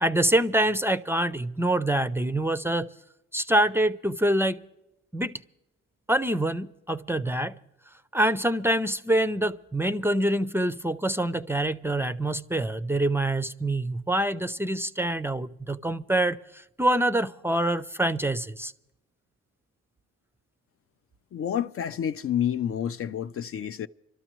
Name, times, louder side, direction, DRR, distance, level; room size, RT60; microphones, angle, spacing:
voice 1, 0.0-2.9 3.3-4.6 5.1-5.4 6.1-7.5 8.1-18.7, right 1 dB, 10° right, 0.5 m, -25 dB
voice 2, 21.3-23.9, left 9 dB, 50° left, 0.4 m, -29 dB
27.0 x 13.0 x 3.0 m
cardioid pair, 90°, 30 cm